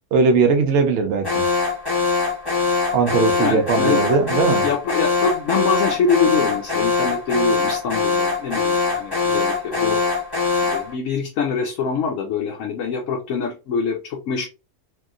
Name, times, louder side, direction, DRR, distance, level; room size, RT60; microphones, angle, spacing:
voice 1, 0.1-1.5 2.9-4.6, right 4 dB, 60° right, 0.8 m, -19 dB
Alarm, 1.2-10.9, left 4 dB, 15° left, 1.1 m, -22 dB
voice 2, 3.4-4.0 4.6-10.0 10.6-14.4, left 5 dB, 70° left, 0.9 m, -24 dB
2.9 x 2.6 x 2.4 m
omnidirectional pair, 1.6 m